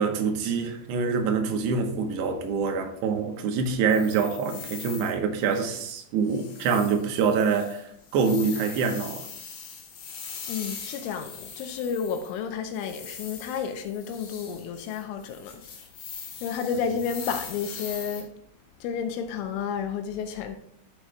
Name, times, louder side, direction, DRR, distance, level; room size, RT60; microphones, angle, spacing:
voice 1, 0.0-7.8 8.1-9.3, right 5 dB, 75° right, 2.8 m, -25 dB
sound 1, 3.9-5.1 5.4-6.0 6.3-12.4 12.7-18.2, left 6 dB, 65° left, 3.9 m, -41 dB
voice 2, 10.5-15.6 16.4-18.3 18.8-20.6, left 7 dB, 85° left, 3.0 m, -31 dB
11.5 x 7.1 x 2.2 m
omnidirectional pair, 5.7 m